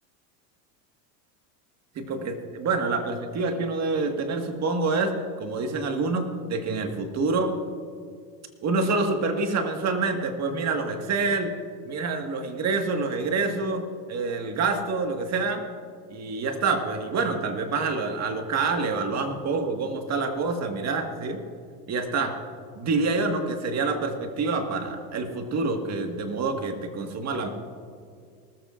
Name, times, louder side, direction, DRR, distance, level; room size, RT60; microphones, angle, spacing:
voice 1, 2.0-7.5 8.6-11.5 11.8-15.6 16.1-21.4 21.9-22.4 22.8-27.5, right 3 dB, 35° right, 5 dB, 1.7 m, -27 dB
19.5 x 14.0 x 2.5 m, 2.1 s
supercardioid pair, 110°, 46 cm